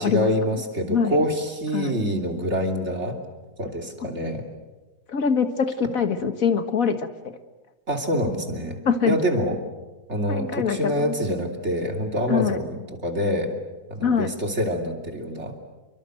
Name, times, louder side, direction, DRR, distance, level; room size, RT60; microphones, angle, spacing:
voice 1, 0.0-3.2 3.6-4.4 7.9-9.6 10.1-13.5 13.9-15.6, equal, 50° right, 4 dB, 3.4 m, -26 dB
voice 2, 0.9-1.3 1.7-2.0 5.1-7.1 8.9-9.2 10.3-11.1 12.3-12.6 14.0-14.3, left 6 dB, 70° left, 9 dB, 1.9 m, -23 dB
28.5 x 23.5 x 7.8 m, 1.2 s
omnidirectional pair, 1.5 m